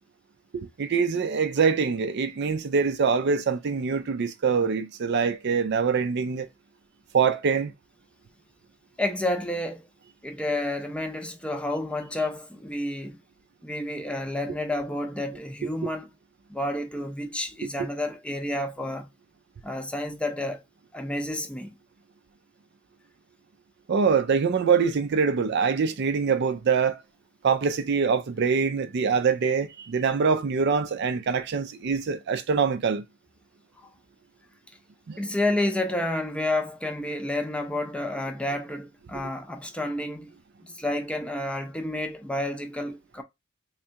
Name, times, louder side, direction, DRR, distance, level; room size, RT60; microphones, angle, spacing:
voice 1, 0.5-6.5 7.1-7.7 15.8-15.9 23.9-27.0 27.4-33.0 35.1-35.2 39.1-39.3, right 5 dB, 55° right, 0.4 m, -24 dB
voice 2, 9.0-9.9 10.2-13.2 13.6-16.1 16.5-19.1 19.6-20.6 20.9-21.7 33.8-33.9 35.2-40.3 40.6-43.2, left 1 dB, 5° left, 0.5 m, -30 dB
3.5 x 3.3 x 2.8 m
head